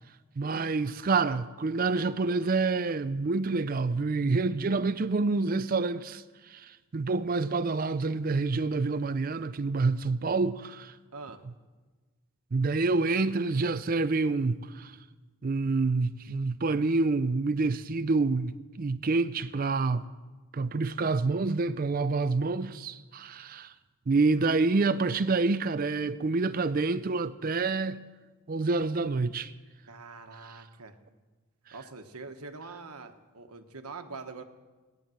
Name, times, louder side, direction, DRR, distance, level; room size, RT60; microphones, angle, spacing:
voice 1, 0.4-6.2 6.5-10.9 12.5-14.9 15.4-20.0 20.5-23.7 24.1-28.0 28.5-29.5, right 3 dB, 40° right, 0.4 m, -27 dB
voice 2, 11.1-11.4 29.9-31.0 31.7-34.4, right 4 dB, 85° right, 1.3 m, -44 dB
17.5 x 10.5 x 7.8 m
head